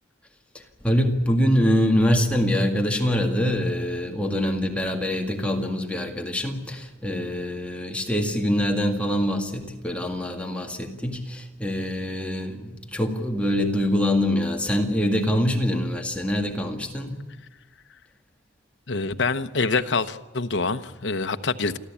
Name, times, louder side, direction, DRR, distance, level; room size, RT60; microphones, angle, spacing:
voice 1, 0.5-17.3, equal, 5° left, 2.0 m, -24 dB
voice 2, 18.9-21.8, left 4 dB, 70° left, 1.0 m, -26 dB
29.0 x 13.0 x 8.6 m
head